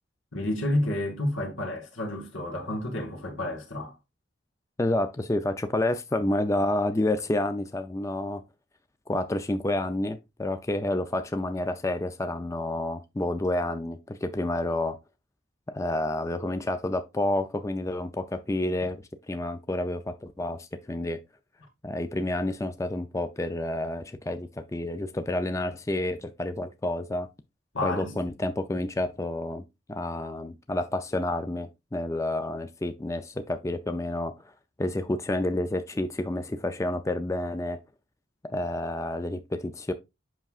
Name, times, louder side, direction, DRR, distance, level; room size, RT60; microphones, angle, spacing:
voice 1, 0.3-3.9 27.7-28.1, left 1 dB, 85° left, 2.4 m, -30 dB
voice 2, 4.8-8.4 9.1-15.0 15.7-21.2 21.8-27.3 27.8-34.3 34.8-37.8 38.4-39.9, left 1 dB, 15° left, 0.4 m, -29 dB
8.0 x 5.9 x 2.4 m
head